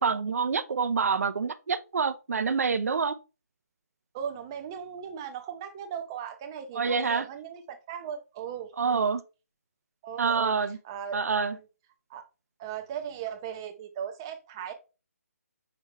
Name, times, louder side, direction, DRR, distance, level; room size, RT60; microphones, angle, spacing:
voice 1, 0.0-3.1 6.8-7.2 8.8-9.2 10.2-10.8 11.1-11.6, right 5 dB, 65° right, 0.5 m, -27 dB
voice 2, 4.1-8.7 10.0-10.5 10.8-11.2 11.5-11.6 12.1-12.2 12.6-14.7, right 8 dB, 15° right, 0.5 m, -37 dB
5.8 x 2.3 x 3.3 m
hypercardioid pair, 170°, 9 cm